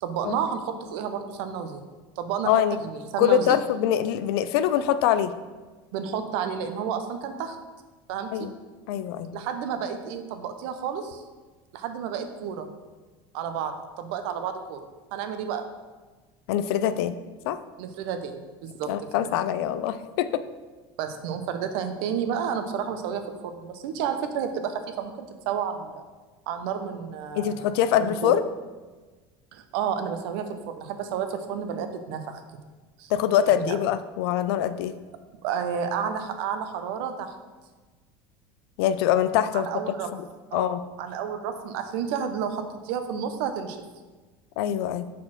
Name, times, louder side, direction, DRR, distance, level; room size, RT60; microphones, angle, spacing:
voice 1, 0.0-1.8 2.2-3.6 5.9-7.6 8.1-8.5 9.3-11.2 11.7-12.7 13.3-15.6 17.8-18.9 19.2-19.3 21.0-26.0 26.5-27.7 28.0-28.3 29.5-32.4 33.0-33.1 33.5-33.8 35.4-37.3 39.5-40.1 40.5-43.8, right 7 dB, 75° right, 8 dB, 0.7 m, -31 dB
voice 2, 2.5-2.8 3.2-5.3 8.3-8.5 8.9-9.4 16.5-17.2 17.5-17.6 18.9-20.4 27.3-28.5 33.1-35.0 38.8-39.7 40.1-40.2 40.5-40.8 44.6-45.1, left 10 dB, 80° left, 12 dB, 0.4 m, -24 dB
4.5 x 4.3 x 5.8 m, 1.3 s
supercardioid pair, 100°, 13 cm